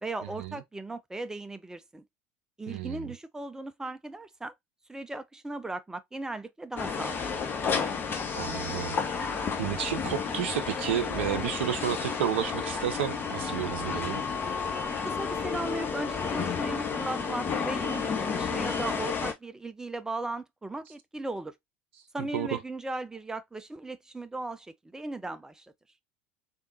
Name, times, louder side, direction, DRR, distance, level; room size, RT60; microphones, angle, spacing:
voice 1, 0.0-2.0 2.6-4.5 4.9-7.5 15.0-21.5 22.1-25.7, right 2 dB, 10° right, 0.6 m, -37 dB
voice 2, 2.7-3.1 8.3-14.2 22.2-22.6, right 10 dB, 65° right, 0.5 m, -32 dB
sound 1, 6.8-19.3, left 5 dB, 30° left, 1.0 m, -31 dB
3.8 x 3.5 x 2.6 m
figure-of-eight pair, 70°, 6 cm